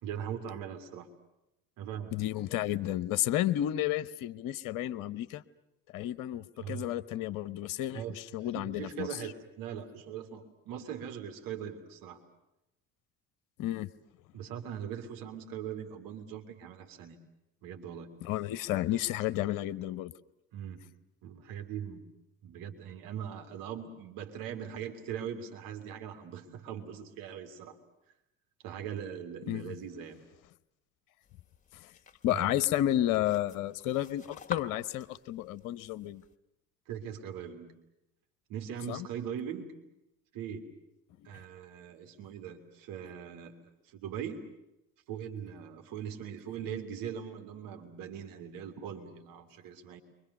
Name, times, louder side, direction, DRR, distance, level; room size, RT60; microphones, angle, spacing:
voice 1, 0.0-1.1 1.8-2.1 6.6-6.9 7.9-12.2 14.3-17.2 17.6-18.1 20.5-20.8 21.2-22.0 22.4-27.8 28.6-30.2 32.3-32.7 36.9-37.7 38.5-39.7 40.3-40.7 41.2-43.6 43.8-44.4 45.1-50.0, right 8 dB, 55° right, 5 dB, 3.2 m, -41 dB
voice 2, 2.1-5.4 5.9-9.1 13.6-13.9 18.2-20.1 29.5-29.7 31.7-31.9 32.2-36.2 38.9-39.1, left 13 dB, 50° left, 15 dB, 1.0 m, -32 dB
sound 1, 31.2-36.3, left 4 dB, 20° left, 2.1 m, -48 dB
30.0 x 24.5 x 6.8 m, 0.90 s
figure-of-eight pair, 55°, 40 cm